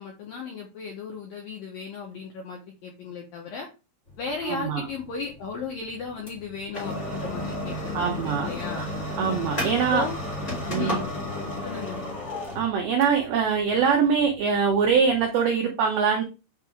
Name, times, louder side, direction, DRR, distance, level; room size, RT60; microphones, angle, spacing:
voice 1, 0.0-3.7 4.2-8.8 9.6-10.2 10.7-11.1 11.6-12.0, left 5 dB, 80° left, 0 dB, 2.0 m, -35 dB
sound 1, 4.1-15.3, left 1 dB, 25° left, 1.5 m, -33 dB
voice 2, 4.4-4.8 7.9-8.5 9.2-10.1 10.7-11.0 12.6-16.2, right 6 dB, 80° right, 1 dB, 2.2 m, -23 dB
8.7 x 3.1 x 3.5 m, 0.29 s
omnidirectional pair, 5.6 m